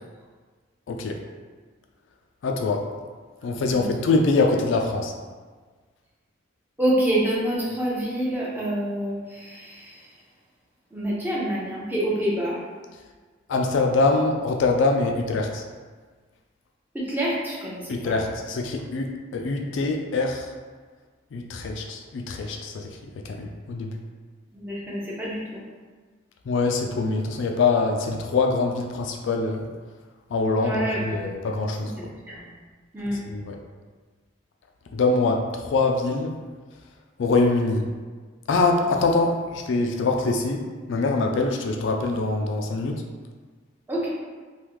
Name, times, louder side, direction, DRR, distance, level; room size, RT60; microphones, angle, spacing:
voice 1, 2.4-2.8 3.4-5.1 13.5-15.6 17.9-20.5 21.3-22.9 23.3-23.9 26.5-29.7 30.3-31.9 33.3-33.6 34.9-36.3 37.2-37.8 38.5-40.6 40.9-42.9, left 3 dB, 70° left, 3 dB, 0.3 m, -24 dB
voice 2, 6.8-10.1 10.9-12.6 16.9-18.2 24.5-25.6 30.6-31.2 31.8-32.4 32.9-33.2 43.9-44.1, right 1 dB, 10° right, -6 dB, 0.7 m, -27 dB
3.4 x 2.3 x 3.0 m, 1.4 s
head